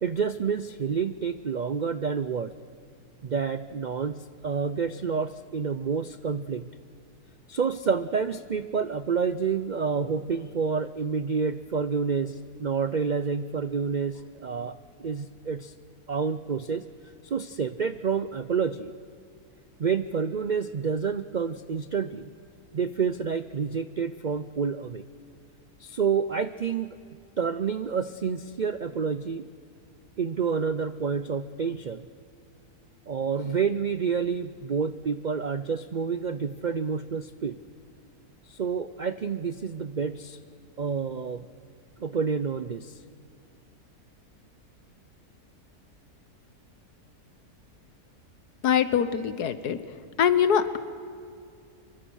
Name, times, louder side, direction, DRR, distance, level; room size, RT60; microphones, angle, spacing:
voice 1, 0.0-2.5 3.2-6.7 7.5-15.7 16.1-16.8 17.2-18.9 19.8-22.3 22.7-25.0 25.8-27.0 27.4-29.5 30.2-32.1 33.1-37.5 38.5-40.4 40.8-41.5 42.0-43.0, right 6 dB, 75° right, 12 dB, 0.4 m, -29 dB
voice 2, 48.6-49.8 50.2-50.8, left 8 dB, 85° left, 12 dB, 1.7 m, -23 dB
25.0 x 24.0 x 6.4 m, 2.4 s
omnidirectional pair, 1.6 m